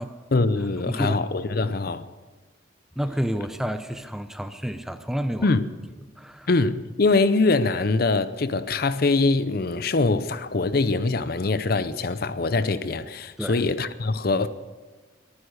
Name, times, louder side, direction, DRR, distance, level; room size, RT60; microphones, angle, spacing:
voice 1, 0.3-2.0 5.4-5.7 6.5-14.5, left 3 dB, 50° left, 0.6 m, -23 dB
voice 2, 0.9-1.3 3.0-5.5 6.2-6.5 13.4-13.6, equal, ahead, 0.6 m, -30 dB
22.5 x 9.7 x 6.5 m
head